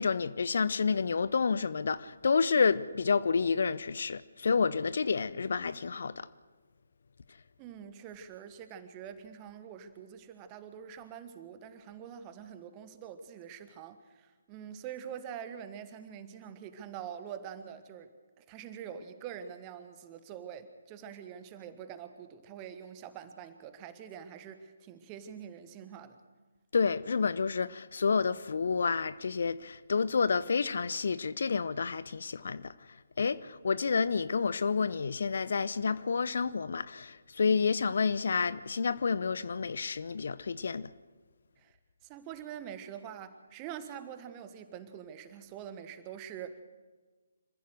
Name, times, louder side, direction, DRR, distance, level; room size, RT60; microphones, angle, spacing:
voice 1, 0.0-6.3 26.7-32.7 33.2-40.9, left 5 dB, 50° left, 0.6 m, -29 dB
voice 2, 7.6-18.1 18.4-26.2 41.6-41.8 42.0-46.6, right 8 dB, 20° right, 1.3 m, -45 dB
26.5 x 15.0 x 6.5 m
figure-of-eight pair, 140°, 0 cm